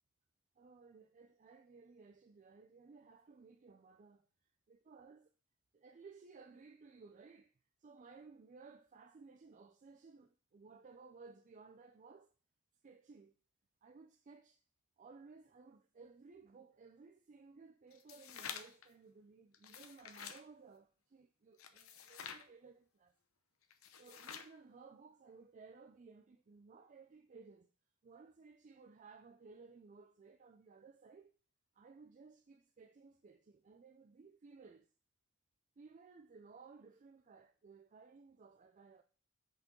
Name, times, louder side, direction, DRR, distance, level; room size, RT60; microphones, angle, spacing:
voice 1, 0.6-4.3 4.7-5.3 5.7-7.5 7.8-12.3 12.8-13.3 13.8-14.6 15.0-23.1 24.0-27.7 28.0-31.4 31.8-34.9 35.8-39.0, right 4 dB, 35° right, 0.4 m, -59 dB
sound 1, 17.9-18.9 19.5-20.4 21.6-22.5 23.7-24.6, left 7 dB, 70° left, 0.8 m, -49 dB
6.0 x 5.3 x 3.7 m
head